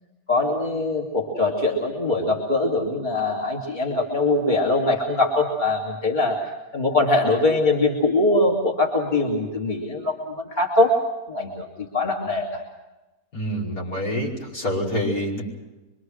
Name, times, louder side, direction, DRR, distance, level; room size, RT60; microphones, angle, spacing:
voice 1, 0.3-12.6, left 2 dB, 25° left, -2 dB, 2.9 m, -22 dB
voice 2, 13.3-15.4, equal, 55° left, -3 dB, 5.9 m, -26 dB
25.5 x 23.5 x 6.4 m, 1.1 s
omnidirectional pair, 1.8 m